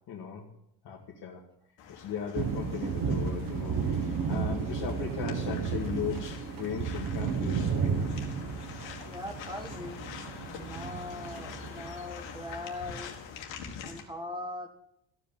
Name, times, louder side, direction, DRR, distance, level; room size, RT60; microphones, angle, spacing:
voice 1, 0.1-0.5 0.8-1.4 1.9-7.8, left 7 dB, 60° left, -2 dB, 1.9 m, -37 dB
sound 1, 1.8-14.0, left 6 dB, 80° left, 2.0 m, -45 dB
sound 2, 2.3-12.4, right 5 dB, 50° right, 1.5 m, -33 dB
voice 2, 9.1-10.0 10.5-13.2 13.8-14.7, left 2 dB, 10° right, 5 dB, 1.9 m, -40 dB
14.5 x 5.1 x 8.3 m, 0.78 s
cardioid pair, 115°, 44 cm